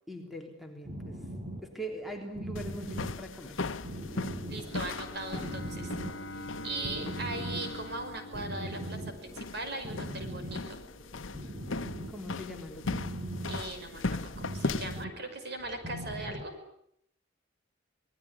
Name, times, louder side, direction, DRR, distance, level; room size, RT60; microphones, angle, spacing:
voice 1, 0.1-1.2 1.6-3.6 12.1-13.1, right 1 dB, ahead, 3 dB, 3.6 m, -42 dB
sound 1, 0.8-16.4, right 1 dB, 30° right, 4.5 m, -41 dB
sound 2, 2.6-15.0, left 3 dB, 90° left, 1.0 m, -38 dB
Bowed string instrument, 4.5-9.4, left 1 dB, 70° left, 1.2 m, -45 dB
voice 2, 4.5-5.9 6.3-10.8 13.5-16.5, right 2 dB, 55° right, 7 dB, 5.6 m, -39 dB
26.5 x 20.0 x 9.8 m, 0.74 s
head